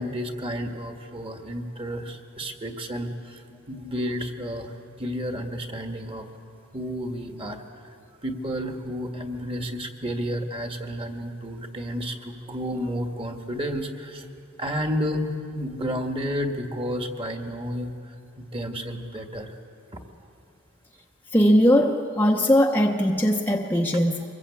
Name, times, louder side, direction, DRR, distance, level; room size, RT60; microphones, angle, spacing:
voice 1, 0.0-6.3 6.7-7.8 8.2-14.3 14.6-19.5 19.9-20.0, equal, 25° right, 5 dB, 1.7 m, -31 dB
voice 2, 21.3-24.2, equal, 10° left, 0 dB, 0.8 m, -20 dB
24.5 x 22.0 x 8.5 m, 2.6 s
head